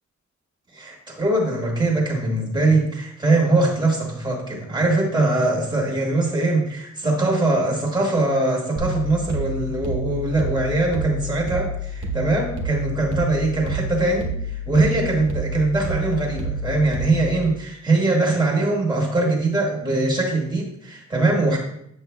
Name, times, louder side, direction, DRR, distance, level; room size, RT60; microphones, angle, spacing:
voice 1, 0.7-21.6, right 2 dB, 15° right, -3 dB, 1.7 m, -22 dB
sound 1, 8.8-17.4, equal, 80° right, 1.1 m, -29 dB
8.1 x 6.6 x 2.3 m, 0.74 s
wide cardioid pair, 150°, 30 cm